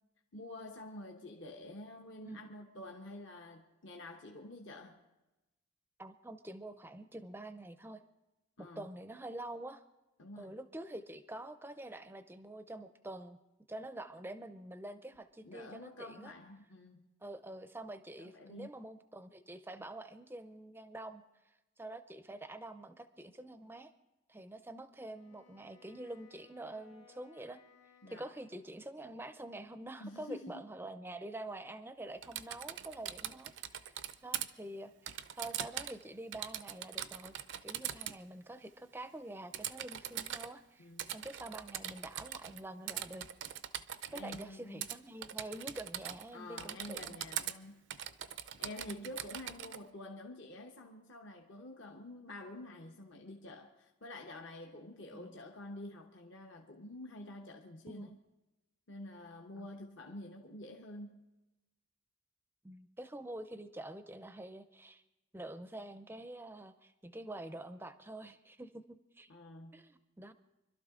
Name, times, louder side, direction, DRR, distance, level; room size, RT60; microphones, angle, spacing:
voice 1, 0.3-5.0 8.6-8.9 10.2-10.5 15.4-17.1 18.2-18.7 28.0-28.3 30.0-30.6 40.8-41.2 44.1-44.8 46.3-47.8 48.3-58.1 58.9-61.2 69.3-69.9, left 1 dB, 55° left, 1.1 m, -48 dB
voice 2, 6.0-8.0 8.6-9.8 10.4-13.4 13.7-16.3 17.2-21.2 21.8-23.9 24.3-27.6 28.1-33.9 34.2-37.3 37.6-43.2 44.1-47.2 48.9-49.1 55.1-55.4 57.9-58.1 59.6-59.7 62.6-65.0 65.3-69.3 69.7-70.3, right 1 dB, 10° right, 0.6 m, -47 dB
Wind instrument woodwind instrument, 25.1-29.3, left 5 dB, 85° left, 1.7 m, -64 dB
Typing, 32.2-34.5 35.1-36.0 36.3-38.2 39.5-40.5 41.0-42.6 42.9-44.4 44.8-45.0 45.2-46.3 46.6-47.6 47.9-49.8, right 10 dB, 55° right, 0.6 m, -41 dB
25.5 x 12.0 x 3.7 m
head